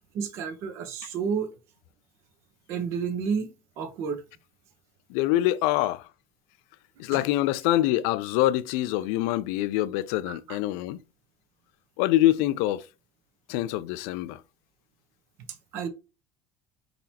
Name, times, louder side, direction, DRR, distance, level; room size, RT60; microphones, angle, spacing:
voice 1, 0.1-1.6 2.7-3.5 3.8-4.2 7.1-7.3 10.3-10.6 15.5-15.9, right 6 dB, 55° right, 0.9 m, -31 dB
voice 2, 5.1-6.1 7.0-11.0 12.0-12.8 13.5-14.4, left 15 dB, 80° left, 0.4 m, -25 dB
4.3 x 3.9 x 2.8 m
cardioid pair, 155°, 6 cm